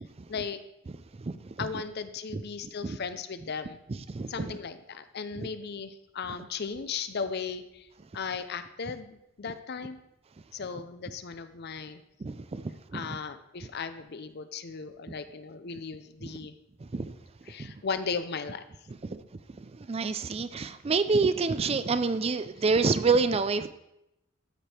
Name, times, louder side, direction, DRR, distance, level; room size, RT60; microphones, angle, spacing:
voice 1, 0.3-0.6 1.6-3.8 4.3-7.9 8.1-10.0 10.5-12.0 12.9-16.5 17.5-18.7, left 5 dB, 50° left, 11 dB, 0.6 m, -36 dB
voice 2, 1.2-1.7 2.3-2.4 2.8-3.0 4.1-4.5 5.4-5.5 12.2-13.2 15.1-15.2 16.2-16.3 16.9-17.2 17.6-17.7 18.9-19.2 19.6-23.7, right 4 dB, 30° right, 12 dB, 0.4 m, -28 dB
12.5 x 5.1 x 4.4 m, 0.85 s
head